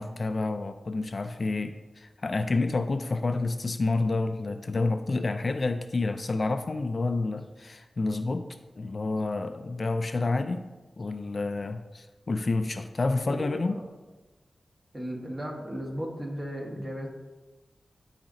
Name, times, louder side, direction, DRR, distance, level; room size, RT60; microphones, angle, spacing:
voice 1, 0.0-8.5 8.8-10.6 11.0-13.8, left 3 dB, 45° left, 8 dB, 0.3 m, -29 dB
voice 2, 13.2-13.8 14.9-17.1, equal, 25° right, -1 dB, 1.4 m, -35 dB
12.0 x 4.9 x 2.7 m, 1.2 s
wide cardioid pair, 120°, 0 cm